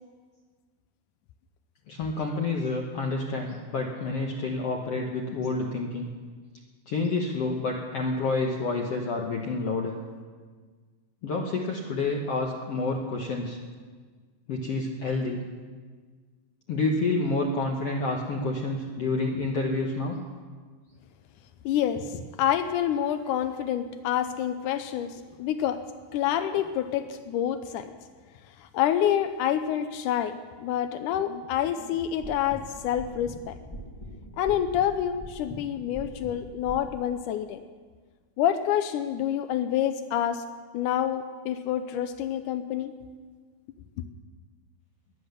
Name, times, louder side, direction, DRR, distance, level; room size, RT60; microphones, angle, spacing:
voice 1, 1.9-6.1 6.9-9.9 11.2-13.6 14.5-15.4 16.7-20.2 21.9-22.0, left 3 dB, 70° left, 1 dB, 1.4 m, -29 dB
voice 2, 21.7-25.8 26.1-27.9 28.6-33.6 34.4-37.6 38.4-40.4 40.7-42.9 44.0-44.1, left 10 dB, 85° left, 9 dB, 1.8 m, -27 dB
sound 1, 31.9-37.0, right 1 dB, 40° left, 0.3 m, -43 dB
21.0 x 10.0 x 6.8 m, 1.5 s
omnidirectional pair, 4.4 m